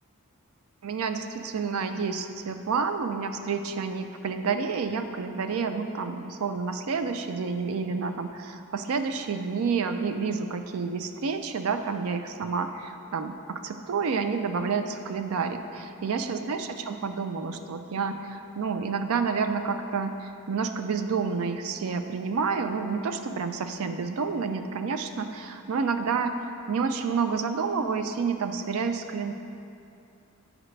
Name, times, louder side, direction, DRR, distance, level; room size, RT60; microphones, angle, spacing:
voice 1, 0.8-29.3, right 5 dB, 75° right, 8 dB, 0.4 m, -29 dB
8.9 x 4.9 x 3.2 m, 2.6 s
head